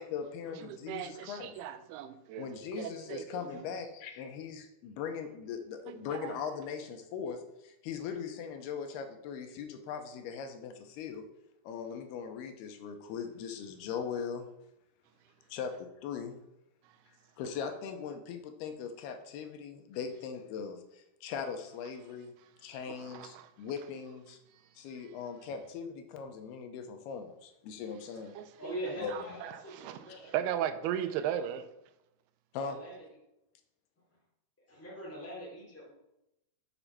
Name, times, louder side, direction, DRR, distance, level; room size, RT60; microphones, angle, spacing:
voice 1, 0.0-1.5 2.4-11.2 11.6-14.5 15.5-16.4 17.4-22.3 22.6-24.4 24.8-28.4 29.0-29.1 30.1-30.3 32.5-32.8, left 6 dB, 85° left, 2.9 m, -40 dB
voice 2, 0.6-3.5 5.9-6.3 16.8-17.0 22.9-23.5 28.4-28.8 29.1-31.7, right 10 dB, 85° right, 2.6 m, -37 dB
voice 3, 28.6-30.6 30.8-31.1 32.6-33.0 34.7-35.9, right 1 dB, 5° left, 1.9 m, -43 dB
6.7 x 6.1 x 5.7 m
omnidirectional pair, 4.5 m